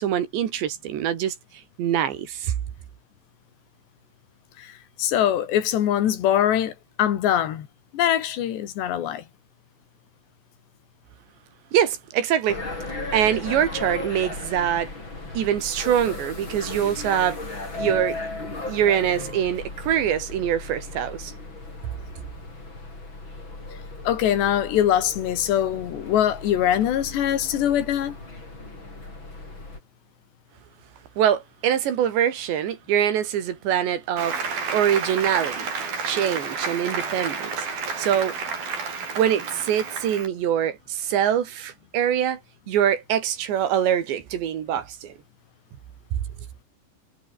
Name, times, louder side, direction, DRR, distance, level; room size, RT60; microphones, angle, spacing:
voice 1, 0.0-1.4 1.8-2.5 11.7-12.6 13.1-14.9 15.3-17.4 17.8-18.2 18.7-21.3 31.2-34.4 34.7-35.7 36.0-37.7 38.0-38.4 39.2-42.4 42.7-45.1 46.1-46.2, right 10 dB, 75° right, 4.6 m, -24 dB
voice 2, 5.0-6.7 7.0-7.7 7.9-9.2 24.1-28.1, left 10 dB, 75° left, 4.3 m, -22 dB
sound 1, 12.5-29.8, left 2 dB, 25° left, 7.4 m, -36 dB
Applause, 34.2-40.3, right 5 dB, 55° right, 7.1 m, -30 dB
omnidirectional pair, 5.1 m